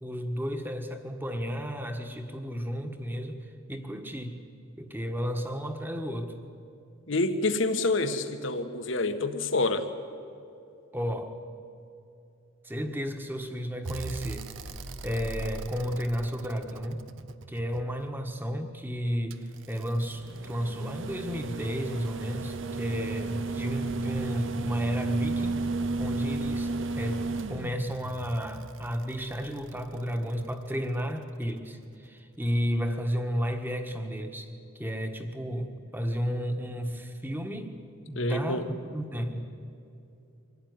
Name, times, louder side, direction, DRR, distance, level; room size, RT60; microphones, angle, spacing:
voice 1, 0.0-4.4 4.8-6.4 10.9-11.4 12.6-14.5 15.0-17.0 17.5-25.6 26.0-27.2 27.5-37.7 38.1-38.6 38.9-39.5, equal, 10° right, 6 dB, 1.5 m, -32 dB
voice 2, 7.1-9.9 38.1-38.7, left 2 dB, 70° left, 8 dB, 1.5 m, -27 dB
sound 1, 13.8-18.0 19.3-30.5 32.0-32.1, right 3 dB, 70° right, 0.9 m, -34 dB
24.5 x 16.5 x 9.6 m, 2.7 s
head